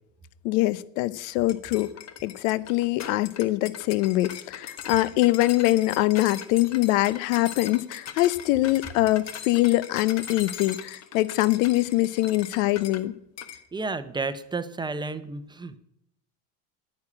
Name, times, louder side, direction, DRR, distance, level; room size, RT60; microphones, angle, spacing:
voice 1, 0.4-1.9 2.2-13.1, left 17 dB, 75° left, 18 dB, 0.8 m, -23 dB
sound 1, 1.5-13.0 13.4-13.6, left 9 dB, 40° left, 1.1 m, -40 dB
voice 2, 13.7-15.8, right 3 dB, 10° right, 12 dB, 0.8 m, -31 dB
9.7 x 9.5 x 8.6 m, 0.77 s
supercardioid pair, 125°, 41 cm